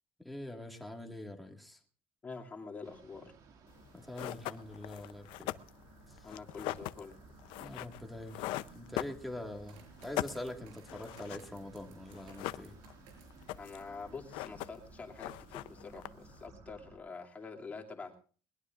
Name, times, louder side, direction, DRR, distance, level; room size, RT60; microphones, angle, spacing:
voice 1, 0.2-1.8 3.9-5.5 6.1-6.3 7.6-8.4 8.7-12.8, left 1 dB, ahead, 1 dB, 1.8 m, -44 dB
voice 2, 2.2-3.3 6.2-7.2 13.6-18.2, left 4 dB, 15° left, 1 dB, 2.6 m, -46 dB
sound 1, 2.8-17.0, right 4 dB, 45° right, 2.2 m, -57 dB
sound 2, 3.8-3.9 4.1-9.6 9.9-11.5 11.8-11.9 12.1-13.0 13.3-13.9 14.2-14.9 15.2-16.4, left 16 dB, 70° left, 0.6 m, -41 dB
sound 3, 9.7-14.0 14.4-15.0, right 5 dB, 85° right, 6.6 m, -61 dB
21.5 x 20.5 x 2.5 m, 0.41 s
cardioid pair, 175°, 9 cm